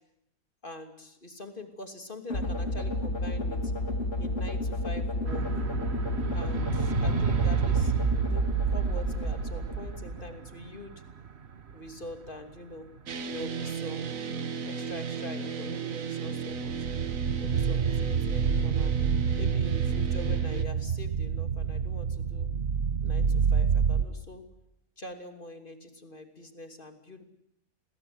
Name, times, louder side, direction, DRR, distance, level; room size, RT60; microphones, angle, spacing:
voice 1, 0.6-3.7 4.2-5.5 6.3-10.9 11.7-12.9 13.2-14.2 14.6-16.9 17.4-18.9 19.3-22.5 23.0-24.4 25.0-27.2, left 1 dB, 35° left, 6 dB, 3.0 m, -44 dB
sound 1, 2.3-10.5, left 1 dB, 55° left, 3.4 m, -31 dB
sound 2, 5.3-11.3 11.5-11.7 12.0-12.3 16.4-24.1, right 6 dB, 50° right, 1.4 m, -28 dB
sound 3, 13.1-20.6, right 6 dB, 70° right, 1.7 m, -35 dB
30.0 x 22.0 x 8.0 m, 0.78 s
omnidirectional pair, 1.5 m